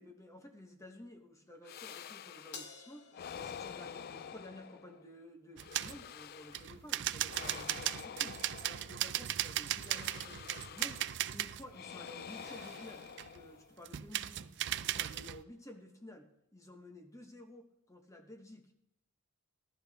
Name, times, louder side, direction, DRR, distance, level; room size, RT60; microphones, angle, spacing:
voice 1, 0.0-3.1 3.3-11.0 11.3-13.1 13.3-14.6 14.8-18.7, left 1 dB, 15° left, 4 dB, 1.0 m, -53 dB
sound 1, 1.6-2.7 3.1-5.1 5.6-6.8 7.2-9.2 9.8-11.2 11.7-13.8, left 8 dB, 45° left, 0.4 m, -48 dB
Crash cymbal, 2.5-5.1, left 5 dB, 85° left, 1.5 m, -53 dB
sound 2, 5.6-6.0 6.5-11.7 12.1-13.4 13.9-15.4, right 12 dB, 55° right, 0.4 m, -37 dB
17.0 x 12.0 x 3.5 m, 0.82 s
head